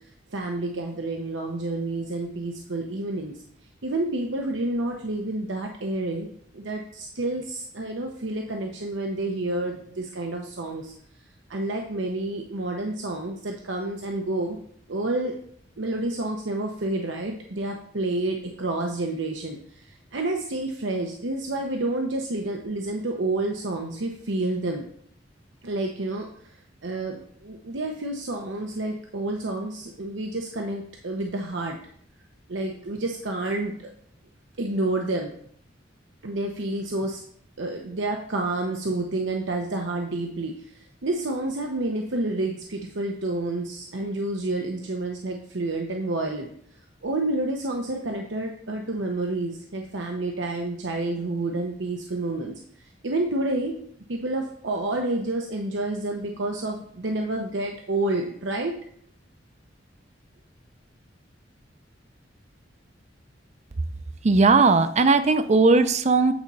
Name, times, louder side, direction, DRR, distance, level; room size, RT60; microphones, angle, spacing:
voice 1, 0.3-3.4 3.8-6.3 6.5-10.9 11.5-14.6 14.9-15.3 15.8-24.9 25.6-26.6 26.8-31.8 32.5-33.9 34.6-35.3 36.2-37.2 37.6-46.5 47.0-52.6 53.0-53.8 54.1-58.7, right 2 dB, 80° right, 2 dB, 0.8 m, -29 dB
voice 2, 64.2-66.3, right 3 dB, 40° right, 10 dB, 0.6 m, -18 dB
8.8 x 4.2 x 5.4 m, 0.63 s
head